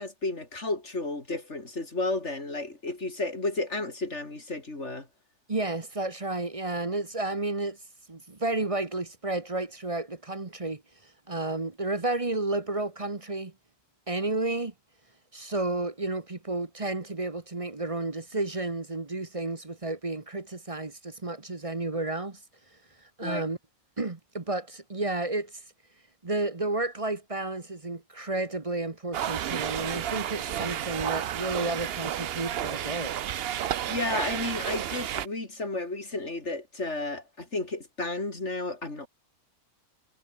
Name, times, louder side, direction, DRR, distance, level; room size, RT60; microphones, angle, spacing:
voice 1, 0.0-5.1 23.2-23.4 33.9-39.1, left 2 dB, 45° left, 4.4 m, -32 dB
voice 2, 5.5-7.8 8.1-10.8 11.3-13.5 14.1-14.7 15.3-22.4 23.2-23.6 24.0-25.5 26.2-33.2, right 2 dB, 25° right, 1.1 m, -31 dB
sound 1, 29.1-35.3, right 10 dB, 60° right, 0.7 m, -31 dB
omnidirectional pair, 1.6 m